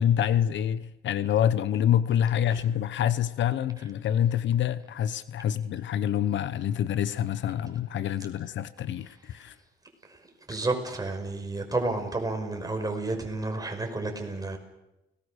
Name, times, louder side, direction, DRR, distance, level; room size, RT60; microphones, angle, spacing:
voice 1, 0.0-9.6, left 10 dB, 70° left, 0.9 m, -26 dB
voice 2, 10.5-14.6, right 2 dB, 20° right, 5.6 m, -31 dB
29.5 x 19.5 x 6.6 m
cardioid pair, 90°, 20 cm